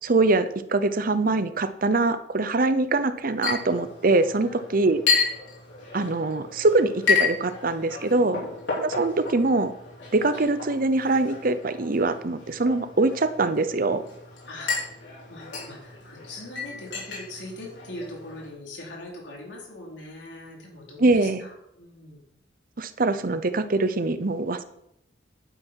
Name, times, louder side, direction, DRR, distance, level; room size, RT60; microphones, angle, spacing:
voice 1, 0.0-5.0 5.9-8.4 8.8-9.7 10.1-14.0 21.0-21.4 22.8-24.6, right 2 dB, 50° right, 12 dB, 0.7 m, -23 dB
Chink clink, 3.4-18.5, left 5 dB, 85° left, 5.0 m, -32 dB
voice 2, 14.4-22.2, left 1 dB, 70° left, -2 dB, 4.1 m, -41 dB
11.0 x 9.6 x 4.6 m, 0.78 s
head